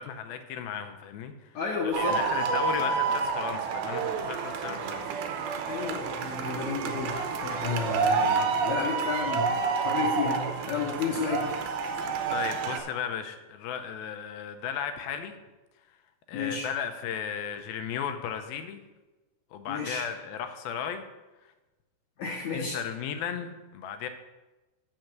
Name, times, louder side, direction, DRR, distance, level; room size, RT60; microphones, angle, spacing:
voice 1, 0.0-1.3 1.8-5.1 12.3-15.4 16.3-18.8 19.5-21.0 22.5-24.1, left 8 dB, 80° left, 7 dB, 2.6 m, -35 dB
voice 2, 1.5-2.2 5.7-9.5 9.8-10.4 10.7-11.5 16.3-16.7 19.7-20.1 22.2-22.8, left 5 dB, 65° left, -2 dB, 2.0 m, -32 dB
sound 1, 1.9-12.8, right 5 dB, 80° right, 2.6 m, -29 dB
7.9 x 6.4 x 5.9 m, 1.1 s
omnidirectional pair, 4.3 m